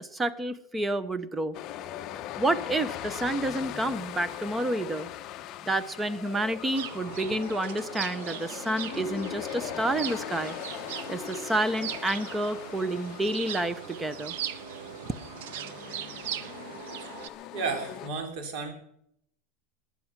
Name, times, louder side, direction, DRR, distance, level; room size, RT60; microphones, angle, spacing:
voice 1, 0.0-1.6 2.4-5.1 5.6-10.6 11.1-14.3, right 1 dB, 10° right, 15 dB, 0.7 m, -29 dB
sound 1, 1.5-18.1, left 12 dB, 30° left, 0.8 m, -40 dB
sound 2, 6.7-17.3, right 10 dB, 70° right, 1.0 m, -39 dB
voice 2, 17.5-18.7, right 4 dB, 50° right, 5 dB, 3.7 m, -33 dB
19.5 x 10.5 x 6.0 m, 0.74 s
supercardioid pair, 165°, 0 cm